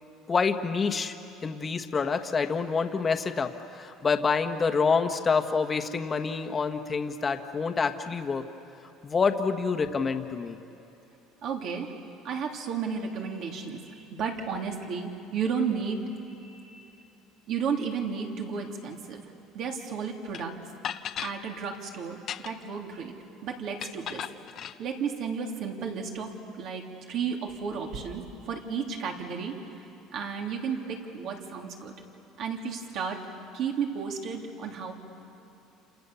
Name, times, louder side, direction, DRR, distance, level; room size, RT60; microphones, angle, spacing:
voice 1, 0.3-1.1 1.4-8.4 9.0-10.6, left 5 dB, 25° left, 7 dB, 1.5 m, -27 dB
voice 2, 11.4-11.9 12.2-16.9 17.5-19.2 19.5-20.5 21.2-23.1 23.4-24.2 24.8-26.3 26.6-29.6 30.1-31.9 32.4-33.2 33.5-34.9, right 6 dB, 55° right, 1 dB, 3.3 m, -33 dB
sound 1, 20.3-20.4 20.8-21.4 22.1-22.7 23.8-24.8, left 10 dB, 45° left, 0.9 m, -36 dB
29.0 x 28.0 x 7.1 m, 2.8 s
cardioid pair, 125°, 0 cm